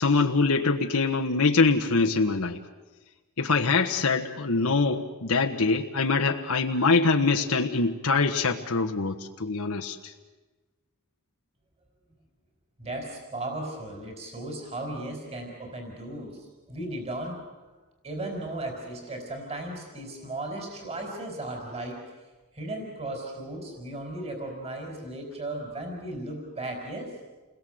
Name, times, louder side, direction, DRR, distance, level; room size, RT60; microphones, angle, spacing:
voice 1, 0.0-2.6 3.4-10.1, left 4 dB, 90° left, 3 dB, 1.4 m, -24 dB
voice 2, 12.8-17.4 18.0-22.1 22.5-27.2, right 1 dB, 30° right, 2 dB, 4.6 m, -36 dB
29.0 x 21.5 x 7.9 m, 1.2 s
head